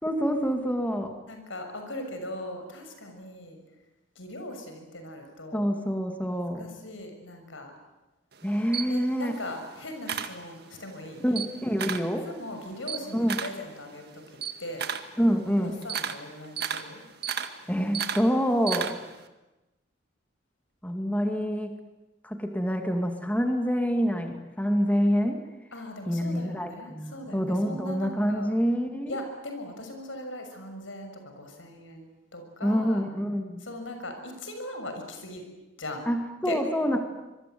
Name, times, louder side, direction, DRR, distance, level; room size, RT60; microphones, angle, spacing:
voice 1, 0.0-1.2 5.5-6.6 8.4-9.4 11.2-12.2 13.1-13.4 15.2-15.8 17.7-18.9 20.8-21.8 22.2-25.4 26.1-29.1 32.6-33.6 36.1-37.0, equal, 10° left, 4 dB, 2.3 m, -26 dB
voice 2, 1.3-3.6 4.1-5.7 6.6-7.7 8.9-11.4 11.9-14.9 15.6-17.0 25.7-28.5 29.1-33.0 33.6-35.4 35.8-36.1 36.4-36.6 36.9-37.0, left 1 dB, 90° left, 5 dB, 6.5 m, -40 dB
Camera, 8.3-10.9 11.2-12.2 12.5-19.2, right 7 dB, 55° right, 1.9 m, -34 dB
25.0 x 23.0 x 9.4 m, 1.1 s
head